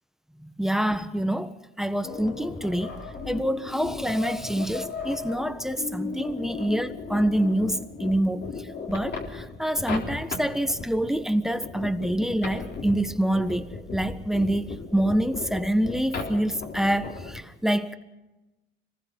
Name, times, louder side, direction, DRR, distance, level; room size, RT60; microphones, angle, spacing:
voice 1, 0.6-3.0 3.3-8.5 8.9-18.0, right 1 dB, ahead, 1.3 m, -26 dB
sound 1, 2.0-17.4, left 4 dB, 60° left, 3.8 m, -36 dB
25.5 x 19.5 x 5.3 m
cardioid pair, 90°, 20 cm